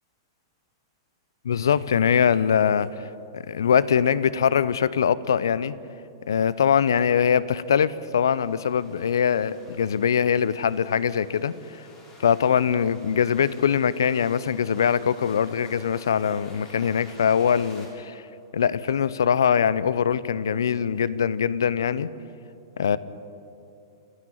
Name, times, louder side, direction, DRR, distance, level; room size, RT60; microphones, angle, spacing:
voice 1, 1.4-3.1 3.3-5.8 6.3-11.8 12.2-18.2 18.5-22.1 22.8-23.0, left 7 dB, 70° left, 18 dB, 0.7 m, -22 dB
sound 1, 7.4-17.8, left 2 dB, 30° left, 6.6 m, -51 dB
28.5 x 9.7 x 9.4 m, 2.8 s
figure-of-eight pair, 105°, 2 cm